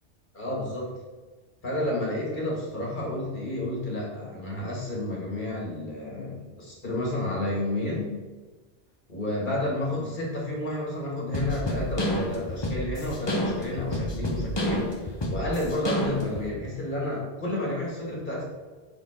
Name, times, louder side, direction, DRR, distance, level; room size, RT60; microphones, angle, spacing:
voice 1, 0.3-0.9 1.6-8.2 9.1-18.5, left 1 dB, 45° left, -4 dB, 2.0 m, -31 dB
sound 1, 11.3-16.5, left 1 dB, 25° left, 0.8 m, -29 dB
7.2 x 3.9 x 4.2 m, 1.3 s
omnidirectional pair, 1.1 m